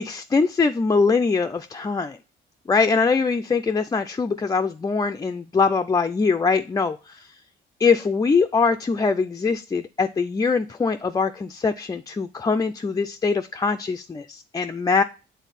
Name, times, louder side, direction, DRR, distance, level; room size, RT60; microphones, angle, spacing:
voice 1, 0.0-2.2 2.7-7.3 7.8-15.0, left 4 dB, 20° left, 6 dB, 0.3 m, -22 dB
7.2 x 3.7 x 4.1 m, 0.33 s
cardioid pair, 90°, 20 cm